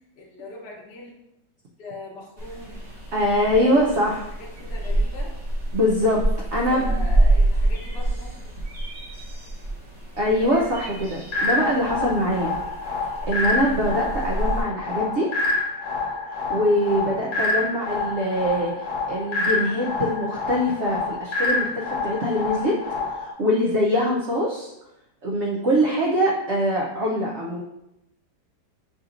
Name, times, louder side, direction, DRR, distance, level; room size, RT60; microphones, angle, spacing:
voice 1, 0.2-1.1 1.8-2.8 3.5-5.3 6.7-8.3 16.9-17.2, left 2 dB, 45° left, -3 dB, 1.0 m, -40 dB
sound 1, 2.4-14.6, right 1 dB, 50° right, 2.1 m, -27 dB
voice 2, 3.1-4.2 5.7-6.2 6.5-6.9 10.2-12.5 13.3-15.3 16.5-22.7 23.1-24.7 25.2-27.6, equal, 75° right, -3 dB, 0.6 m, -23 dB
sound 2, 11.3-23.3, left 3 dB, 85° left, 1.4 m, -27 dB
6.3 x 2.9 x 2.5 m, 0.88 s
omnidirectional pair, 1.9 m